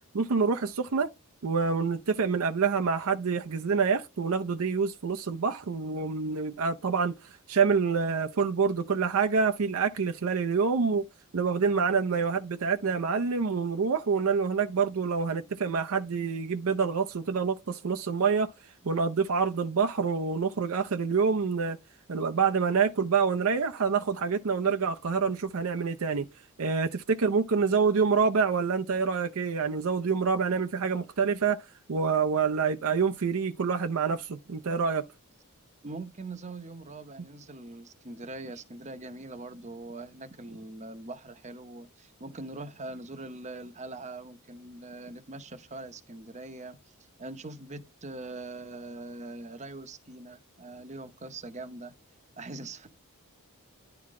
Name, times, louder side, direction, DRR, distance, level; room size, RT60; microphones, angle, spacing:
voice 1, 0.1-1.1 1.4-7.1 7.5-11.1 11.3-18.5 18.8-21.8 22.1-26.3 26.6-31.6 31.9-35.0, right 5 dB, 65° right, 0.6 m, -27 dB
voice 2, 35.8-46.8 47.2-51.9 52.4-52.9, right 2 dB, 30° right, 0.8 m, -42 dB
10.5 x 3.9 x 3.6 m
head